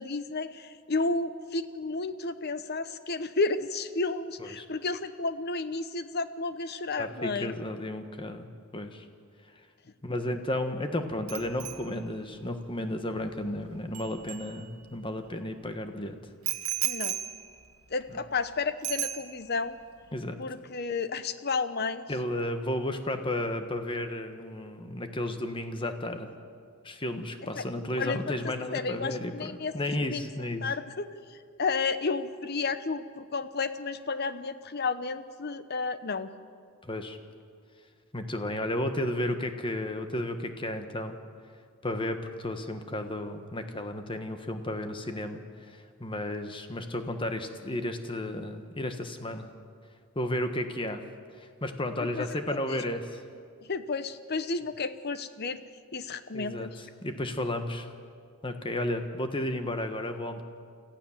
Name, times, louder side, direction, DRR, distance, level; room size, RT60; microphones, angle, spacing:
voice 1, 0.0-7.5 16.8-17.2 17.9-19.8 20.4-22.0 27.5-27.6 28.0-28.2 28.7-29.7 30.1-30.3 30.6-31.1 31.6-36.3 52.0-52.8 53.7-55.6 55.9-56.8, left 4 dB, 45° left, 12 dB, 0.8 m, -32 dB
voice 2, 7.0-9.1 10.0-16.2 18.1-18.2 20.1-20.3 22.1-26.3 26.8-30.7 36.8-37.2 38.1-41.2 41.8-49.5 50.1-51.0 51.4-53.2 56.3-57.9 58.4-60.4, left 1 dB, 25° left, 7 dB, 1.3 m, -33 dB
Bicycle bell, 11.3-15.1 16.4-18.5 18.8-19.7 20.0-20.3, right 13 dB, 85° right, 1.1 m, -37 dB
26.0 x 15.0 x 7.3 m, 2.2 s
head